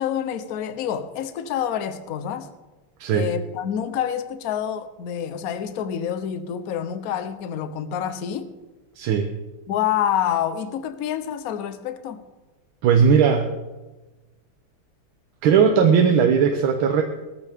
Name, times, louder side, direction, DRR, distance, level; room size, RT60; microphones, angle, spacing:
voice 1, 0.0-2.5 3.1-8.5 9.7-12.2, left 9 dB, 60° left, 11 dB, 1.0 m, -27 dB
voice 2, 9.0-9.3 12.8-13.5 15.4-17.0, right 6 dB, 70° right, 5 dB, 1.6 m, -18 dB
18.0 x 14.0 x 3.5 m, 1.2 s
omnidirectional pair, 2.4 m